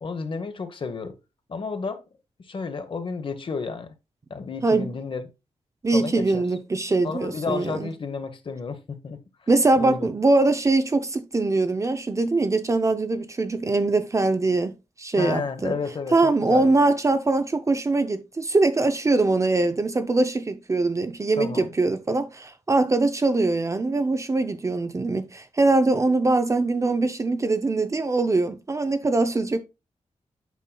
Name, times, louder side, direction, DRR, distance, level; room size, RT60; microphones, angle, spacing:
voice 1, 0.0-1.1 1.5-2.0 2.4-3.9 4.3-5.3 5.9-6.4 7.0-9.5 9.8-10.1 15.2-16.7 21.4-21.7, left 4 dB, 45° left, 1.0 m, -31 dB
voice 2, 5.8-7.9 9.5-14.7 15.0-15.7 16.1-29.6, right 2 dB, 25° right, 0.5 m, -22 dB
8.2 x 5.7 x 2.2 m
wide cardioid pair, 145°, 12 cm